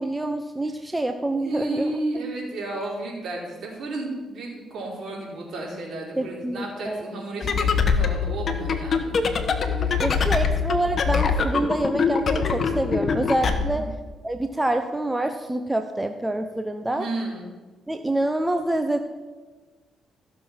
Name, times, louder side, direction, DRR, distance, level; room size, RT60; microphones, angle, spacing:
voice 1, 0.0-1.9 6.2-7.0 10.0-13.9 14.2-17.0 17.9-19.0, right 1 dB, 10° right, 6 dB, 0.7 m, -26 dB
voice 2, 1.3-9.2 9.6-10.3 13.5-13.8 16.9-17.4, right 2 dB, 60° right, -3 dB, 4.4 m, -33 dB
sound 1, 7.4-13.6, left 5 dB, 50° left, 1.1 m, -23 dB
14.5 x 6.6 x 5.9 m, 1.3 s
cardioid pair, 90°, 0 cm